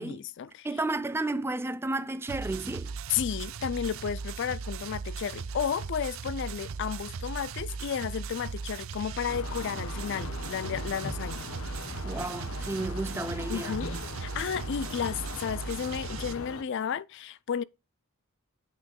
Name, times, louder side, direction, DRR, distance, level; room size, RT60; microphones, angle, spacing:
voice 1, 0.0-0.7 3.1-11.5 13.5-13.9 14.2-17.6, left 8 dB, 55° left, 0.4 m, -33 dB
voice 2, 0.6-2.9 12.0-13.8, right 2 dB, 10° right, 0.4 m, -32 dB
sound 1, 2.3-16.3, right 5 dB, 70° right, 0.5 m, -38 dB
sound 2, 9.3-16.6, left 3 dB, 85° left, 1.2 m, -40 dB
8.2 x 3.5 x 6.3 m
head